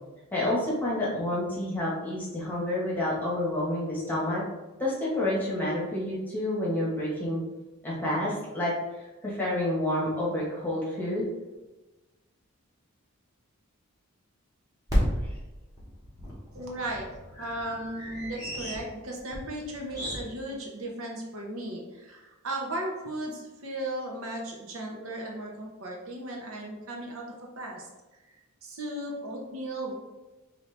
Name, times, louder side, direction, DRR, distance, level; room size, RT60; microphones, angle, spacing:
voice 1, 0.3-4.4 4.8-7.4 7.8-8.7 9.2-11.3, left 1 dB, 10° left, -6 dB, 1.1 m, -29 dB
sound 1, 11.2-11.3 11.5-11.6 14.9-20.2, equal, 15° right, 1.1 m, -33 dB
voice 2, 16.5-17.1 17.4-27.3 27.6-27.8 28.6-29.9, right 1 dB, 75° right, 0 dB, 0.8 m, -36 dB
4.1 x 2.7 x 3.3 m, 1.1 s
head